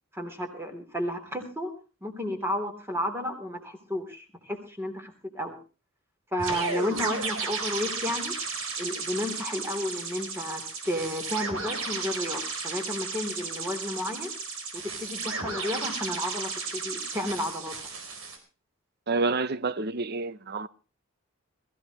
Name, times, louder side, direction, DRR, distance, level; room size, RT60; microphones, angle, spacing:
voice 1, 0.1-1.7 2.0-5.6 6.3-8.4 8.8-14.3 14.7-17.8, left 1 dB, 10° right, 3.5 m, -32 dB
sound 1, 6.4-18.4, right 4 dB, 80° right, 4.3 m, -34 dB
voice 2, 19.1-20.7, right 3 dB, 50° right, 0.8 m, -28 dB
22.0 x 15.0 x 3.1 m
head